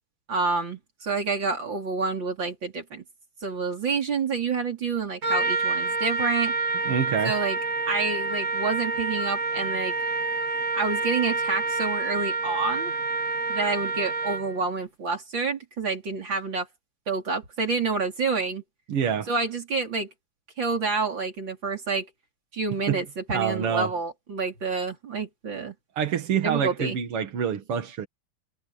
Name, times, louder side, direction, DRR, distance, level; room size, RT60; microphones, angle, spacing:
voice 1, 0.3-3.0 3.4-6.6 7.2-7.6 7.9-9.9 10.7-12.9 13.5-16.7 17.1-18.6 19.3-20.1 20.6-22.1 22.5-25.7 26.4-27.0, right 4 dB, 55° right, 4.5 m, -28 dB
Trumpet, 5.2-14.6, right 3 dB, 40° right, 1.6 m, -28 dB
voice 2, 6.9-7.3 18.9-19.3 22.9-23.0 23.3-23.9 26.0-28.1, right 8 dB, 90° right, 2.6 m, -26 dB
omnidirectional pair, 2.4 m